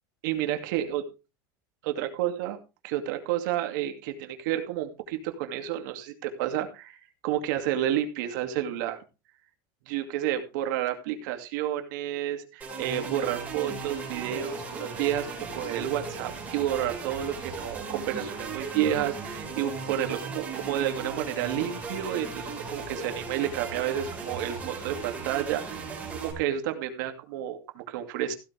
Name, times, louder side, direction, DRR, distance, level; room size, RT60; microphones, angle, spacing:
voice 1, 0.2-1.0 1.9-2.6 2.8-7.0 7.2-9.0 9.9-15.3 15.5-28.3, right 11 dB, 60° right, 6 dB, 2.4 m, -30 dB
sound 1, 12.6-26.3, right 4 dB, 15° right, 4.8 m, -37 dB
15.5 x 8.9 x 3.4 m, 0.30 s
supercardioid pair, 165°, 11 cm